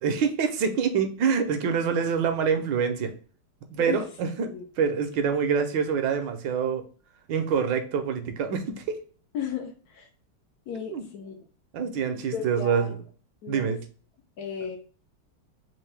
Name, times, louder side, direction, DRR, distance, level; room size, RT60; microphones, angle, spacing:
voice 1, 0.0-3.1 3.7-4.5 4.8-6.8 7.3-9.0 10.9-11.0 11.7-13.0 13.5-13.8, right 6 dB, 75° right, 6 dB, 1.2 m, -26 dB
voice 2, 9.3-10.1 10.7-11.3 12.3-12.9 13.4-13.8 14.4-14.8, left 7 dB, 75° left, 4 dB, 0.9 m, -34 dB
3.7 x 2.6 x 3.2 m, 0.41 s
omnidirectional pair, 2.2 m